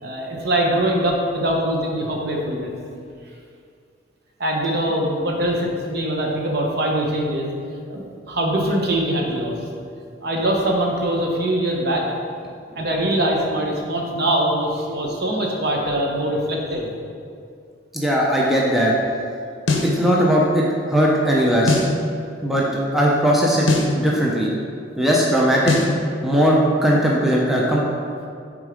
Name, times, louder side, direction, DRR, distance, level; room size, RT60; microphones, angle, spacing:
voice 1, 0.0-2.7 4.4-7.5 7.9-9.5 10.2-12.1 12.7-16.9, right 1 dB, 55° right, 0 dB, 0.9 m, -22 dB
voice 2, 17.9-18.9 19.8-21.8 22.4-22.6 22.9-23.7 23.9-24.5 25.0-25.7 26.2-27.8, equal, ahead, -4 dB, 0.5 m, -18 dB
sound 1, 19.7-20.0 21.7-22.0 23.7-24.0 25.7-26.0, left 3 dB, 70° left, 0.7 m, -20 dB
6.5 x 3.6 x 5.1 m, 2.3 s
head